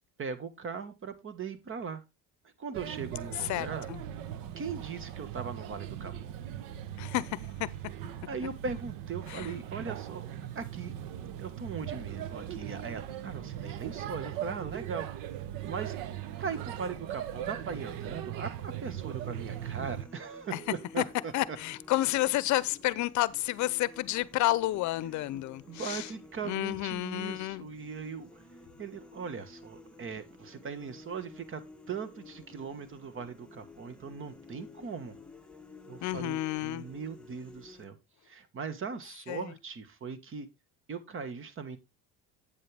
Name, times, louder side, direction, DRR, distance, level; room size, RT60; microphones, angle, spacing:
voice 1, 0.2-2.0 2.6-3.9 4.6-6.4 8.3-10.9 11.4-15.1 15.6-16.0 16.4-21.6 25.7-28.4 28.8-31.6 31.9-35.1 35.9-38.0 38.2-40.5 40.9-41.8, right 5 dB, 35° right, 1.4 m, -39 dB
Male speech man speaking / Child speech kid speaking / Chatter, 2.7-20.0, right 11 dB, 80° right, 1.0 m, -39 dB
voice 2, 3.5-4.0 7.0-7.7 9.3-9.5 20.5-20.6 21.0-21.1 21.3-26.1 26.4-27.7 36.0-36.9 39.3-39.5, left 16 dB, 60° left, 0.7 m, -30 dB
sound 1, 18.8-37.9, left 2 dB, 5° left, 1.2 m, -53 dB
8.6 x 7.6 x 3.4 m
cardioid pair, 120°, 34 cm